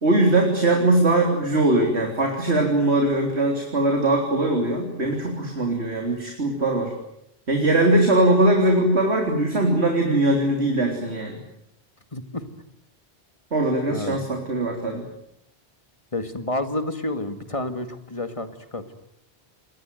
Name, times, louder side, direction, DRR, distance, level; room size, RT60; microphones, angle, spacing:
voice 1, 0.0-6.9 7.5-11.4 13.5-15.0, right 1 dB, 75° right, 2 dB, 3.9 m, -21 dB
voice 2, 12.1-12.4 13.9-14.3 16.1-18.9, left 2 dB, 30° left, 9 dB, 2.2 m, -30 dB
27.5 x 22.0 x 9.3 m, 0.79 s
omnidirectional pair, 1.1 m